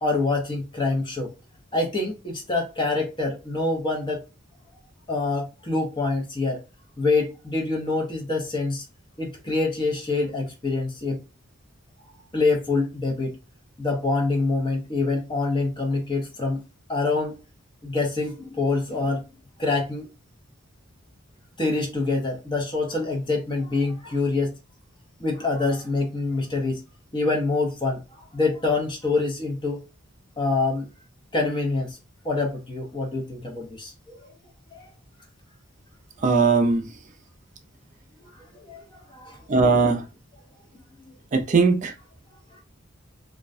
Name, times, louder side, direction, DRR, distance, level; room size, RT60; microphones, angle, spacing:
voice 1, 0.0-1.3 1.7-4.2 5.1-6.6 7.0-8.8 9.2-11.2 12.3-13.3 13.8-16.6 16.9-17.4 17.8-19.2 19.6-20.1 21.6-24.5 25.2-26.8 27.1-29.8 30.4-30.9 31.3-32.0 32.2-34.3 34.7-34.9 38.3-39.4 42.5-42.6, left 3 dB, 25° left, 0.7 m, -26 dB
voice 2, 36.2-36.9 39.5-40.0 41.3-41.9, right 4 dB, 40° right, 0.4 m, -19 dB
2.3 x 2.1 x 2.5 m
head